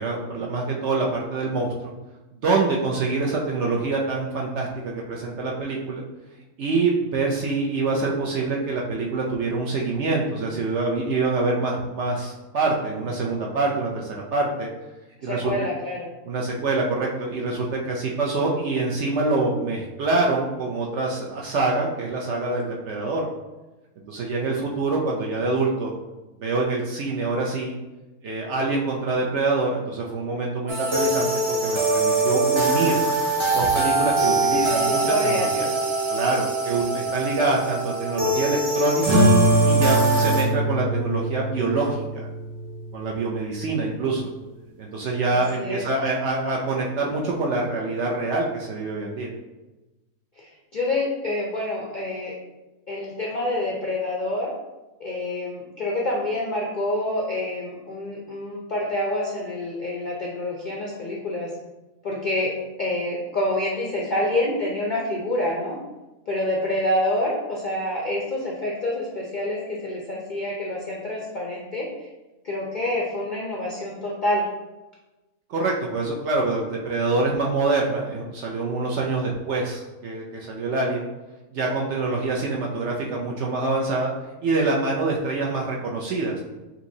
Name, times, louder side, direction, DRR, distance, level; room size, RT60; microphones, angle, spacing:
voice 1, 0.0-1.9 2.4-6.0 6.6-14.7 15.2-15.5 16.3-23.3 24.1-25.9 26.4-27.8 28.2-33.0 33.5-35.7 36.1-39.2 39.6-42.0 42.9-44.3 44.8-49.3 75.5-81.1 81.5-84.1 84.4-86.4, right 3 dB, 65° right, -1 dB, 0.7 m, -25 dB
voice 2, 15.2-16.1 34.5-35.5 45.3-45.8 50.4-52.4 52.9-54.5 55.0-61.6 62.0-65.8 66.3-72.1 72.4-74.5, left 1 dB, 60° left, -3 dB, 0.4 m, -27 dB
sound 1, 30.7-40.4, right 3 dB, 35° right, 0.5 m, -23 dB
sound 2, 39.0-44.1, equal, 80° right, 1.8 m, -23 dB
5.7 x 2.8 x 2.7 m, 1.1 s
omnidirectional pair, 1.6 m